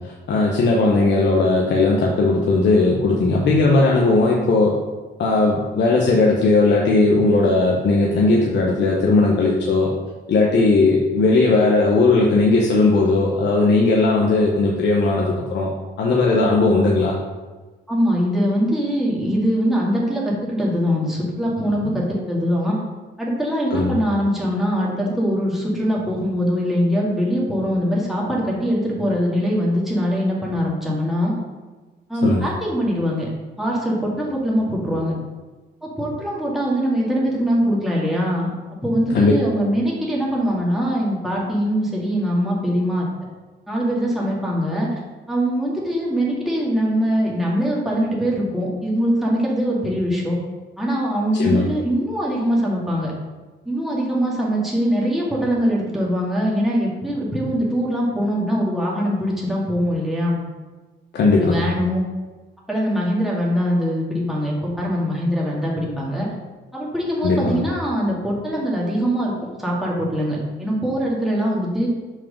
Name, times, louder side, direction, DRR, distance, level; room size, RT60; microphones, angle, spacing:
voice 1, 0.3-4.8 5.2-9.9 10.3-15.7 16.0-17.2 23.7-24.0 32.2-32.4 39.1-39.3 51.4-51.7 61.1-61.7 67.2-67.6, left 3 dB, 60° left, -2 dB, 1.0 m, -17 dB
voice 2, 17.9-22.8 23.2-31.3 32.1-35.1 35.8-38.5 38.8-43.1 43.7-44.9 45.3-50.4 50.8-53.1 53.7-60.4 61.4-62.0 62.7-66.3 66.7-71.9, equal, ahead, -5 dB, 2.1 m, -22 dB
6.1 x 4.8 x 5.1 m, 1.3 s
cardioid pair, 90°, 20 cm